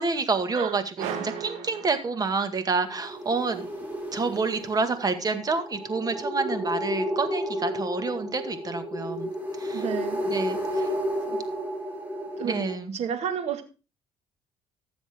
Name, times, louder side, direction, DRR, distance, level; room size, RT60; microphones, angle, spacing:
voice 1, 0.0-3.6 4.1-9.3 9.6-9.8 10.3-10.9 12.4-13.0, right 4 dB, 30° right, 1.9 m, -28 dB
sound 1, 1.0-2.7, right 7 dB, 85° right, 2.5 m, -36 dB
sound 2, 2.9-12.7, equal, 15° right, 4.8 m, -32 dB
voice 2, 9.7-10.2 11.3-11.4 12.4-12.6 12.9-13.6, right 8 dB, 65° right, 1.9 m, -30 dB
15.5 x 7.1 x 3.7 m
cardioid pair, 90°, 12 cm